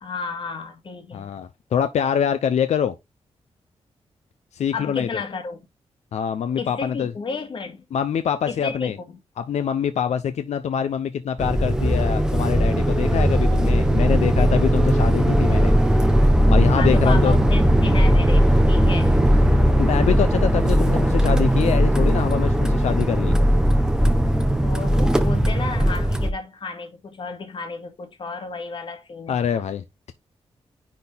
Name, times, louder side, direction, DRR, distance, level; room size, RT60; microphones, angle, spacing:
voice 1, 0.0-1.3 4.7-5.6 6.6-7.9 8.5-9.2 16.8-19.2 24.6-29.6, left 4 dB, 50° left, 2.0 m, -32 dB
voice 2, 1.1-3.0 4.5-5.2 6.1-7.1 7.9-9.0 9.4-15.7 16.5-17.4 19.8-23.4 29.3-30.1, left 8 dB, 85° left, 0.7 m, -24 dB
sound 1, 11.4-26.3, equal, 5° right, 1.1 m, -18 dB
10.0 x 4.3 x 3.5 m
wide cardioid pair, 155°, 11 cm